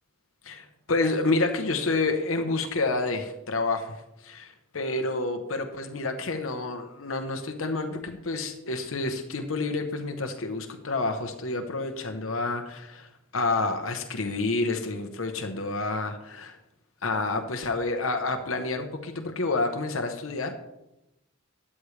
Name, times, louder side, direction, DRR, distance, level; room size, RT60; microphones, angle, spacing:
voice 1, 0.4-16.6 17.0-20.5, left 3 dB, 75° left, 5 dB, 1.0 m, -29 dB
13.0 x 8.6 x 3.3 m, 0.90 s
head